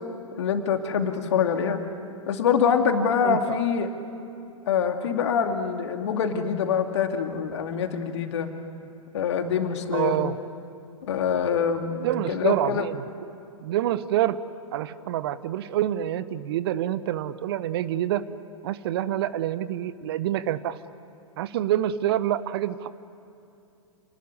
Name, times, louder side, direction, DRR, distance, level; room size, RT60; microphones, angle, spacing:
voice 1, 0.4-1.8 2.3-3.9 4.7-8.5 9.1-10.2 11.0-12.9, left 7 dB, 55° left, 5 dB, 2.5 m, -25 dB
voice 2, 3.2-3.6 9.9-10.4 12.0-13.0 13.6-14.4 14.7-18.2 18.6-20.8 21.4-22.9, right 12 dB, 45° right, 15 dB, 0.9 m, -27 dB
29.0 x 20.0 x 9.7 m, 2.7 s
figure-of-eight pair, 105°, 17 cm